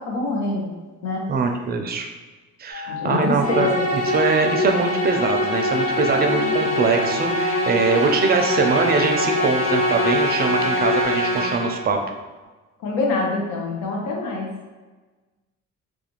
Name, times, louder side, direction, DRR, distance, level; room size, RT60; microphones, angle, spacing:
voice 1, 0.1-0.7 1.0-1.2 2.9-3.9 12.8-14.5, left 3 dB, 85° left, -1 dB, 0.7 m, -25 dB
voice 2, 1.3-2.1 2.6-12.0, right 4 dB, 35° right, 4 dB, 0.4 m, -22 dB
sound 1, 2.7-11.1, left 6 dB, 25° left, 0.8 m, -31 dB
Musical instrument, 3.4-11.9, equal, 50° left, 0.5 m, -23 dB
sound 2, 5.5-7.3 7.6-9.2 9.6-10.0, right 2 dB, 85° right, 0.5 m, -38 dB
2.4 x 2.3 x 2.9 m, 1.3 s
cardioid pair, 90°, 30 cm